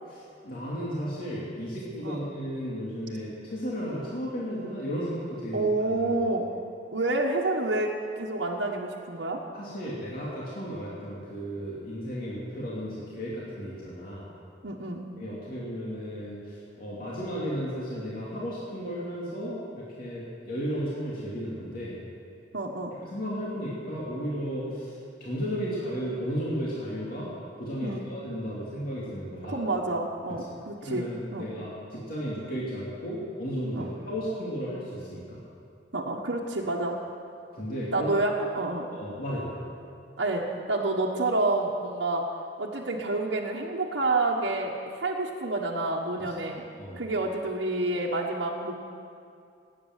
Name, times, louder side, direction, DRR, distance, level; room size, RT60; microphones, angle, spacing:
voice 1, 0.4-5.6 5.9-6.1 9.5-14.3 15.2-22.0 23.1-27.3 27.6-29.6 30.8-35.4 37.5-38.1 38.9-39.6 46.8-47.0, equal, 55° left, -7 dB, 2.8 m, -34 dB
voice 2, 5.5-6.5 6.9-7.9 8.2-9.4 14.6-15.0 22.5-22.9 27.8-28.1 29.5-31.5 33.7-33.9 35.9-37.0 37.9-38.9 40.2-42.2 42.6-46.7 47.0-48.8, right 2 dB, 90° right, -3 dB, 1.3 m, -28 dB
18.5 x 9.0 x 7.5 m, 2.5 s
head